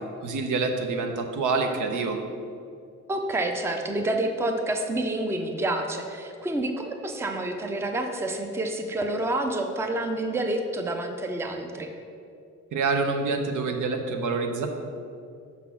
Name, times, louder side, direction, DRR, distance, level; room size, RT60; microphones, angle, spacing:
voice 1, 0.2-2.2 12.7-14.7, right 4 dB, 85° right, 5 dB, 0.8 m, -26 dB
voice 2, 3.1-11.9, right 1 dB, 10° right, 5 dB, 0.4 m, -28 dB
5.8 x 4.1 x 5.7 m, 2.4 s
cardioid pair, 140°, 30 cm